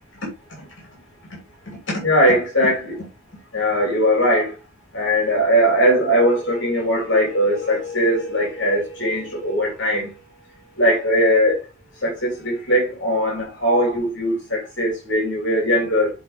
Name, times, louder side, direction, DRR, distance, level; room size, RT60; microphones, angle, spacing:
voice 1, 1.9-3.0 3.5-4.5 4.9-10.2 10.8-11.6 12.0-16.1, equal, 70° left, 3.1 m, -20 dB
7.3 x 4.1 x 3.5 m
head